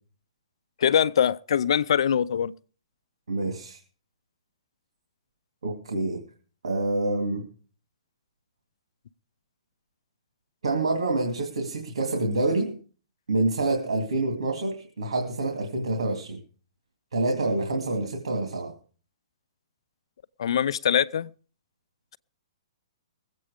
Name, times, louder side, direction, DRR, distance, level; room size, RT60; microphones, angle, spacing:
voice 1, 0.8-2.5 20.4-21.3, left 8 dB, 70° left, 0.6 m, -23 dB
voice 2, 3.3-3.8 5.6-6.2 6.6-7.4 10.6-12.7 13.3-16.4 17.1-18.7, right 2 dB, 90° right, 2.7 m, -27 dB
21.0 x 8.4 x 5.0 m
hypercardioid pair, 150°, 3 cm